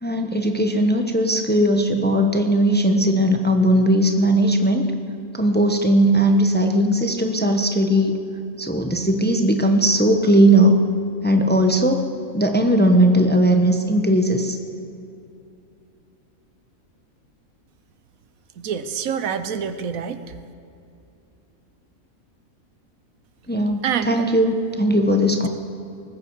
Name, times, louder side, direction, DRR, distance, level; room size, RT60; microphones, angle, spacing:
voice 1, 0.0-4.9 5.3-8.2 8.6-10.8 11.2-12.0 12.3-14.6 23.5-25.5, right 1 dB, 10° left, 5 dB, 0.8 m, -18 dB
voice 2, 18.6-20.2 23.8-24.2, right 7 dB, 75° right, 11 dB, 1.2 m, -26 dB
19.5 x 15.0 x 4.7 m, 2.7 s
omnidirectional pair, 1.5 m